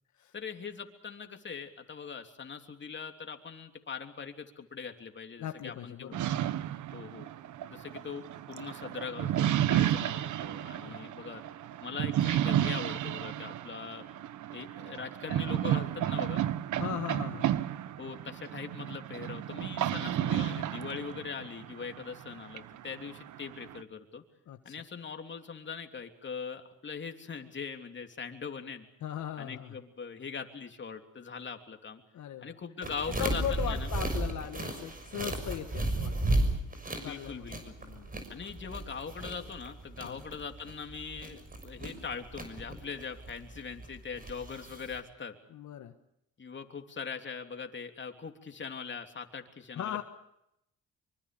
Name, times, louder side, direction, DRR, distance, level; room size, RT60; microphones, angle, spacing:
voice 1, 0.3-6.1 6.9-7.3 7.7-11.4 11.8-14.0 14.5-16.4 18.0-24.2 24.6-28.8 29.4-32.0 32.4-33.9 37.0-37.7 38.3-45.4 46.4-50.0, left 6 dB, 40° left, 5 dB, 3.3 m, -41 dB
voice 2, 5.4-6.3 10.8-11.1 16.8-17.5 20.2-20.6 24.5-24.7 29.0-29.8 32.1-32.5 33.2-36.1 37.0-38.1 40.0-40.2 45.5-45.9 49.7-50.0, left 10 dB, 70° left, 6 dB, 1.7 m, -39 dB
sound 1, 6.1-23.8, right 11 dB, 75° right, 1.2 m, -32 dB
sound 2, 32.8-45.0, right 1 dB, 30° right, 6.5 m, -35 dB
25.0 x 24.5 x 6.9 m, 0.81 s
cardioid pair, 90°, 30 cm